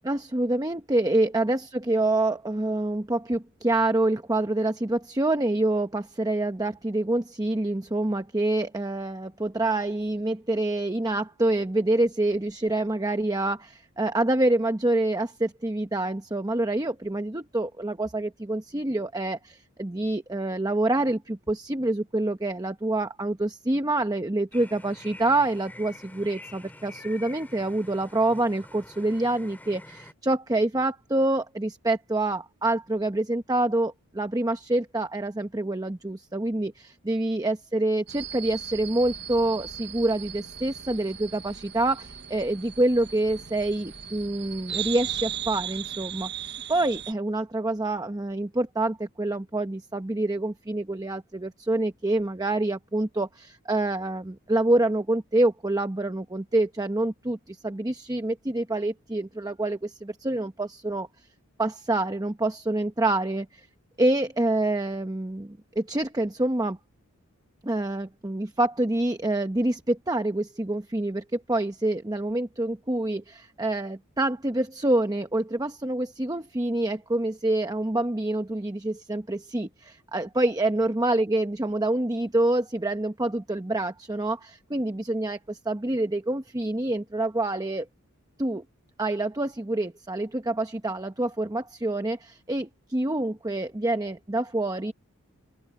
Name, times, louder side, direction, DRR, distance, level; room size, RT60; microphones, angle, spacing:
voice 1, 0.0-61.1 61.6-63.7 64.0-66.8 67.6-87.9 88.4-88.6 89.0-94.9, right 2 dB, 15° right, 0.9 m, -26 dB
sound 1, 24.5-30.1, left 2 dB, 10° left, 2.4 m, -47 dB
sound 2, 38.1-47.1, right 9 dB, 50° right, 1.2 m, -37 dB
open air
head